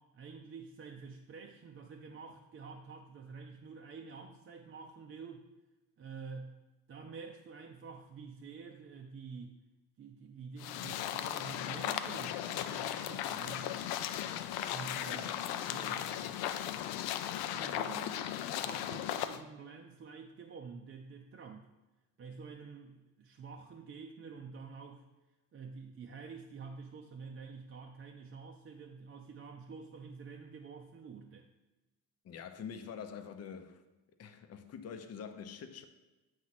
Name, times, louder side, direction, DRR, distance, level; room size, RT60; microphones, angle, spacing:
voice 1, 0.0-5.5 6.0-6.5 6.9-9.6 10.0-13.8 14.7-16.7 17.5-21.7 22.2-25.0 25.5-31.5, right 5 dB, 30° right, 0.6 m, -48 dB
sound 1, 10.6-19.4, left 11 dB, 80° left, 0.6 m, -37 dB
voice 2, 32.2-33.8 34.2-35.8, left 7 dB, 40° left, 0.7 m, -45 dB
8.2 x 3.2 x 5.8 m
cardioid pair, 105°, 38 cm